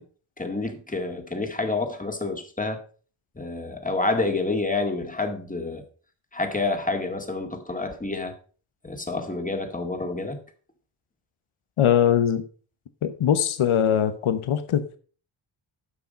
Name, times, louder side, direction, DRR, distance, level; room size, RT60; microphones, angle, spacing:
voice 1, 0.4-2.8 3.4-5.8 6.3-8.3 8.8-10.4, left 3 dB, 15° left, 2.0 m, -28 dB
voice 2, 11.8-12.4 13.0-15.0, left 9 dB, 80° left, 1.0 m, -21 dB
9.7 x 6.0 x 5.1 m
cardioid pair, 60°, 49 cm